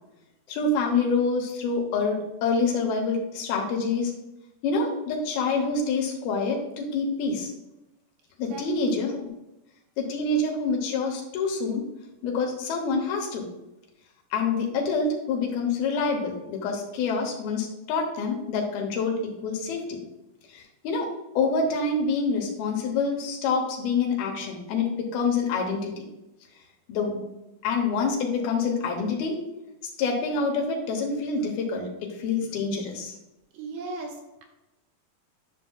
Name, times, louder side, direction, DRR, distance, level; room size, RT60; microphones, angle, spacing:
voice 1, 0.5-4.1 4.6-7.5 8.4-9.2 10.0-11.9 12.2-13.5 14.3-20.0 20.5-21.1 21.4-26.1 26.9-27.2 27.6-29.4 30.0-33.2, left 4 dB, 85° left, 1 dB, 3.0 m, -26 dB
voice 2, 8.5-8.9 33.5-34.4, right 3 dB, 90° right, 1 dB, 3.0 m, -37 dB
10.5 x 5.4 x 2.3 m, 0.97 s
omnidirectional pair, 4.3 m